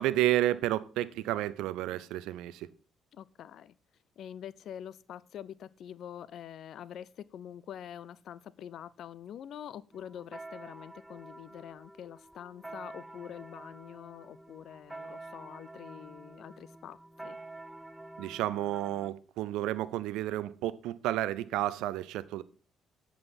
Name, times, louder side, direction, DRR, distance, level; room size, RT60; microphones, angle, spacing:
voice 1, 0.0-2.7 18.2-22.4, right 14 dB, 75° right, 0.4 m, -31 dB
voice 2, 3.1-3.8 4.2-17.4, left 10 dB, 65° left, 0.5 m, -45 dB
sound 1, 9.9-19.1, right 2 dB, 10° right, 0.8 m, -48 dB
7.6 x 5.8 x 6.1 m
hypercardioid pair, 50°, 0 cm